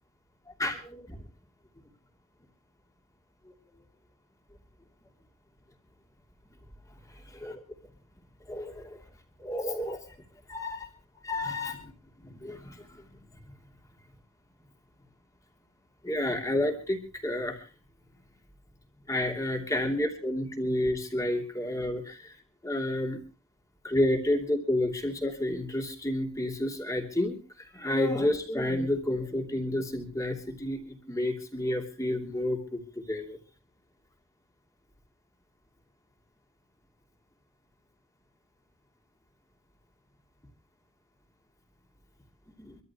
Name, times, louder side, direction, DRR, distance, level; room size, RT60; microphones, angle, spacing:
voice 1, 0.6-1.2 7.3-7.6 8.5-9.0 9.4-10.0 10.5-10.9 11.2-11.9 12.2-13.1 16.0-17.6 19.1-22.3 22.6-23.2 23.8-33.4 42.6-42.8, left 1 dB, 15° left, 2 dB, 2.9 m, -30 dB
25.5 x 13.5 x 3.0 m, 0.33 s
head